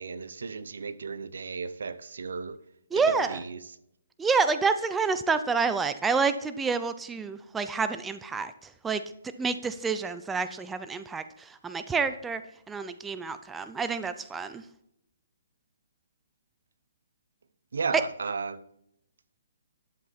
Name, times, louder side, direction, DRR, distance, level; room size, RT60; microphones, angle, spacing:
voice 1, 0.0-2.6 2.9-3.7 17.7-18.6, right 5 dB, 70° right, 16 dB, 0.7 m, -34 dB
voice 2, 2.9-3.4 4.2-8.5 8.8-9.0 9.4-11.2 11.6-12.4 12.7-14.6, right 5 dB, 10° right, 11 dB, 0.5 m, -28 dB
11.5 x 7.5 x 4.2 m, 0.77 s
hypercardioid pair, 145°, 0 cm